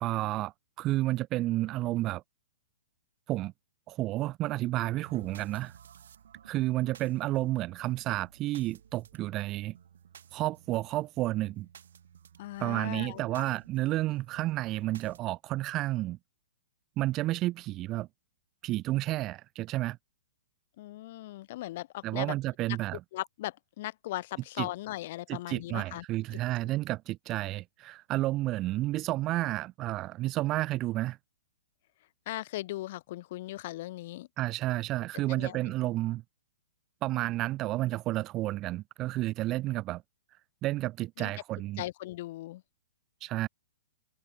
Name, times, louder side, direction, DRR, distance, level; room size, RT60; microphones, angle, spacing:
voice 1, 0.0-2.2 3.3-3.5 3.9-5.7 6.5-9.8 10.3-11.7 12.6-16.2 17.0-18.1 18.6-20.0 22.0-23.0 24.6-24.7 25.3-31.2 34.4-36.2 37.0-40.0 40.6-41.8 43.2-43.5, right 16 dB, 30° right, 0.6 m, -31 dB
sound 1, 5.0-15.2, right 9 dB, 75° right, 7.8 m, -55 dB
voice 2, 12.4-13.5 20.8-22.3 22.7-22.8 23.1-26.0 32.3-34.3 35.3-35.7 41.2-41.3 41.8-42.6, left 16 dB, 55° left, 1.1 m, -38 dB
hypercardioid pair, 125°, 0 cm